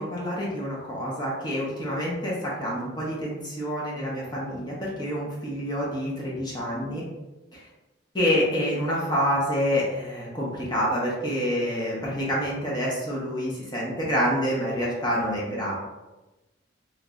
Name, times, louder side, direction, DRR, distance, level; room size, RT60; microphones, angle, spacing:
voice 1, 0.0-2.3 2.6-7.0 8.1-15.8, equal, 25° left, -5 dB, 0.9 m, -27 dB
3.3 x 2.9 x 2.5 m, 1.1 s
head